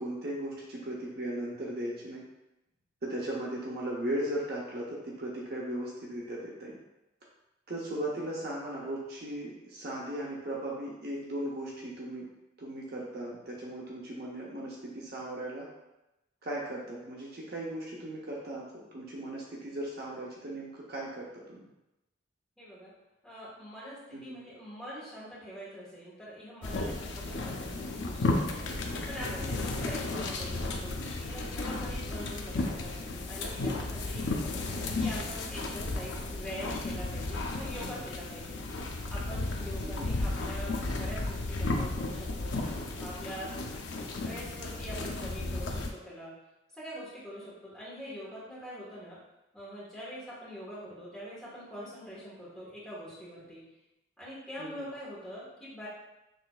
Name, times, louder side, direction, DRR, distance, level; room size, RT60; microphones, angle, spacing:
voice 1, 0.0-2.2 3.0-6.8 7.7-12.2 12.6-15.7 16.4-18.6 18.9-21.7 24.1-24.4 39.8-40.1 54.6-54.9, right 1 dB, 50° right, -4 dB, 0.7 m, -37 dB
voice 2, 22.6-22.9 23.2-34.5 35.0-38.6 39.1-42.5 43.0-43.7 44.0-46.4 46.7-49.2 49.5-53.6 54.2-55.9, equal, ahead, -9 dB, 1.4 m, -44 dB
sound 1, 26.6-45.9, left 2 dB, 65° left, 0.5 m, -34 dB
6.2 x 3.1 x 2.3 m, 0.96 s
head